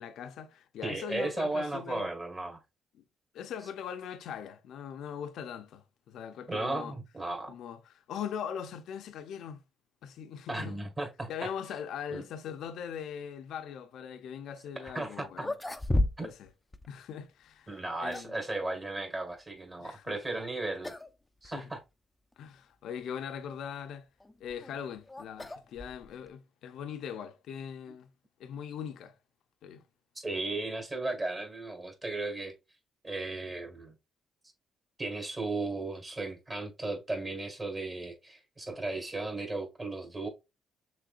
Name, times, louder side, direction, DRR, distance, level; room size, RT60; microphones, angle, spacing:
voice 1, 0.0-2.1 2.9-3.0 3.3-6.9 7.5-9.6 10.0-10.7 11.3-15.5 16.2-16.5 16.9-18.3 19.8-20.4 21.4-21.7 22.4-24.1 24.4-28.1 28.4-29.2 29.6-29.8, left 8 dB, 80° left, 0.6 m, -41 dB
voice 2, 0.8-2.6 6.5-7.5 10.5-11.5 12.1-12.2 14.7-15.5 16.2-16.3 17.7-21.0 21.4-21.8 30.1-32.5 33.0-33.9 35.0-40.3, right 2 dB, 25° right, 1.7 m, -35 dB
sound 1, 14.9-15.0 15.4-16.5 16.7-16.9 17.7-18.4 20.2-20.5 20.8-21.1 21.4-21.5 22.3-22.4 24.2-26.3, left 1 dB, 10° left, 0.5 m, -33 dB
6.3 x 3.3 x 2.5 m
cardioid pair, 90°, 0 cm